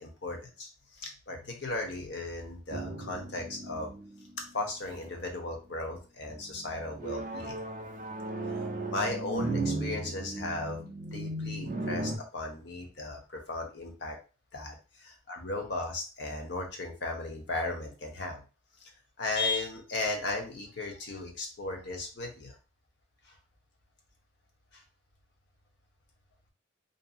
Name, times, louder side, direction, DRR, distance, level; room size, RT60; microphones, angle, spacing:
voice 1, 0.0-3.9 4.5-7.6 8.9-10.8 11.1-14.2 14.5-18.4 19.2-22.5 23.3-23.4 24.7-24.8, left 2 dB, 60° left, 2 dB, 0.8 m, -36 dB
sound 1, 2.7-4.5 5.0-5.5 6.3-12.2, right 2 dB, 40° right, 0.4 m, -36 dB
2.6 x 2.6 x 2.4 m, 0.32 s
head